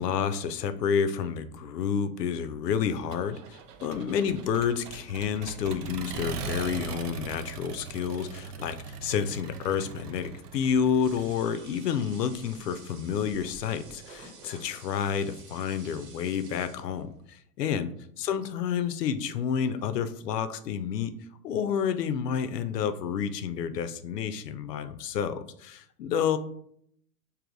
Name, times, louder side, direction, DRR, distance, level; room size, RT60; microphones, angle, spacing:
voice 1, 0.0-17.9 18.2-21.1 21.4-26.4, left 7 dB, 90° left, 11 dB, 0.6 m, -29 dB
Accelerating revving vroom, 3.1-11.4, right 5 dB, 75° right, 0.6 m, -40 dB
sound 1, 11.0-17.1, right 4 dB, 60° right, 1.1 m, -50 dB
4.8 x 2.7 x 2.5 m, 0.68 s
hypercardioid pair, 120°, 48 cm